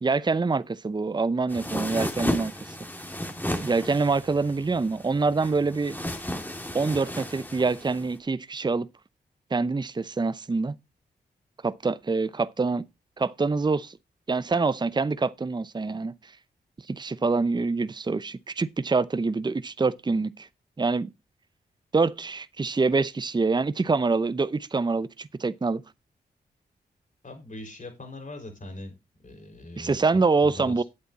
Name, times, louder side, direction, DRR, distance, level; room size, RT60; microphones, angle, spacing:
voice 1, 0.0-2.8 3.6-6.0 6.7-8.9 9.5-10.7 11.6-12.9 13.2-14.0 14.3-16.1 16.9-20.5 20.8-21.1 21.9-25.8 29.8-30.8, right 4 dB, 25° right, 0.7 m, -25 dB
sound 1, 1.5-8.1, left 1 dB, 10° left, 2.3 m, -34 dB
voice 2, 27.2-28.9 29.2-30.0 30.4-30.8, left 1 dB, 45° left, 5.3 m, -41 dB
9.7 x 8.2 x 4.1 m
cardioid pair, 50°, 18 cm